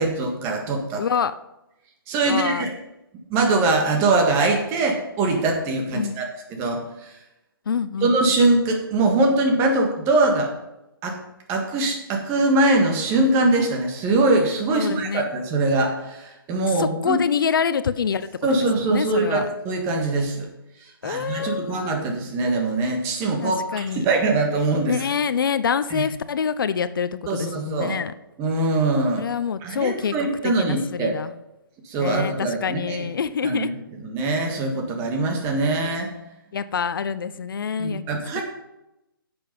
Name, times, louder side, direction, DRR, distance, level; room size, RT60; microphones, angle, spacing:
voice 1, 0.0-1.0 2.1-2.7 3.3-6.3 6.6-7.1 8.0-10.5 11.0-11.2 11.5-17.2 18.4-20.5 21.0-24.9 25.9-26.0 27.3-28.0 28.4-29.2 29.6-31.2 31.9-33.0 33.4-33.7 34.0-36.1 37.8-38.4, right 2 dB, 20° right, 2 dB, 1.8 m, -22 dB
voice 2, 1.0-1.3 2.3-2.7 5.9-6.2 7.7-8.2 14.7-15.3 16.7-18.3 18.8-19.5 21.0-22.0 23.4-24.1 24.9-28.1 29.2-31.3 32.0-33.7 36.5-38.4, left 6 dB, 65° left, 14 dB, 0.6 m, -26 dB
10.5 x 7.0 x 5.4 m, 0.91 s
hypercardioid pair, 150°, 12 cm